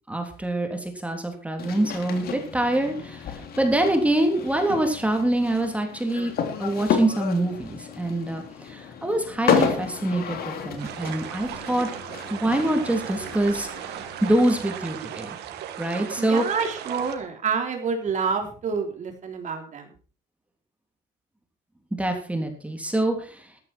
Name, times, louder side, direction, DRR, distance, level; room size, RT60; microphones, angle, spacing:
voice 1, 0.1-6.3 6.6-11.9 12.3-13.7 14.2-15.3 15.8-16.4 22.0-23.4, right 1 dB, 10° right, 4 dB, 3.3 m, -25 dB
sound 1, 1.6-14.5, left 7 dB, 65° left, 2.9 m, -31 dB
sound 2, 10.8-17.2, right 10 dB, 80° right, 2.2 m, -36 dB
voice 2, 16.2-19.8, right 5 dB, 45° right, 4 dB, 3.4 m, -28 dB
13.5 x 13.0 x 4.5 m, 0.37 s
cardioid pair, 110°, 17 cm